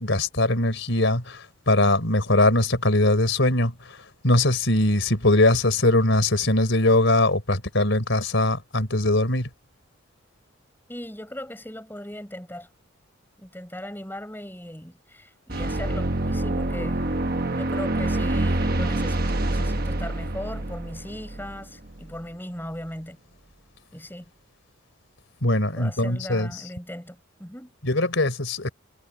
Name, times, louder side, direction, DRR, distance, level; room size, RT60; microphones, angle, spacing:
voice 1, 0.0-9.5 25.4-26.5 27.8-28.7, left 2 dB, 65° left, 4.0 m, -21 dB
voice 2, 10.9-12.7 13.4-17.0 17.5-23.2 23.9-24.2 25.7-27.7, left 1 dB, 10° left, 6.8 m, -38 dB
sound 1, 15.5-22.2, right 1 dB, 45° right, 1.2 m, -26 dB
head